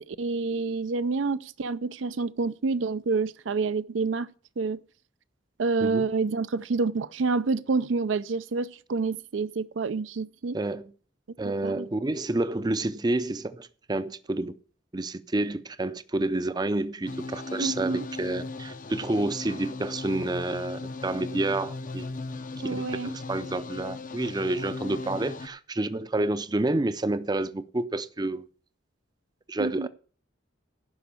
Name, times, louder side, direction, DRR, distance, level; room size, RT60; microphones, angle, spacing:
voice 1, 0.1-4.3 4.6-4.8 5.6-10.6 11.4-11.9 17.6-18.0 22.6-23.2 29.6-29.9, right 4 dB, 80° right, 0.5 m, -28 dB
voice 2, 10.5-10.9 11.4-14.6 14.9-22.1 22.6-28.4 29.5-29.9, right 2 dB, 20° right, 0.5 m, -29 dB
sound 1, 17.1-25.5, left 3 dB, 45° left, 0.6 m, -37 dB
11.0 x 5.3 x 8.4 m
head